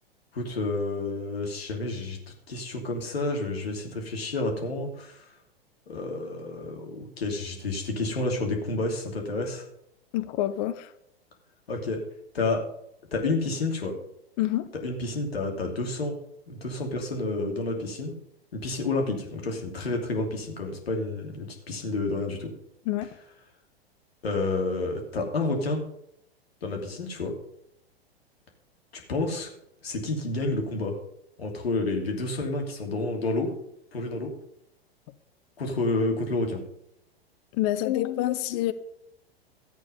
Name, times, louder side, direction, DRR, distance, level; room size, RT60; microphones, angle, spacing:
voice 1, 0.3-2.2 2.5-5.3 5.9-9.6 11.7-12.0 12.3-12.7 13.1-14.0 14.8-16.1 16.5-18.1 18.5-22.5 24.2-25.8 26.6-27.3 28.9-29.5 29.8-31.0 31.4-33.5 33.9-34.3 35.6-36.6, left 2 dB, 70° left, 2 dB, 2.9 m, -29 dB
voice 2, 10.1-10.9 14.4-14.7 22.9-23.1 37.5-38.7, left 14 dB, 40° left, 11 dB, 1.0 m, -27 dB
13.5 x 8.4 x 5.4 m, 0.73 s
figure-of-eight pair, 100°, 31 cm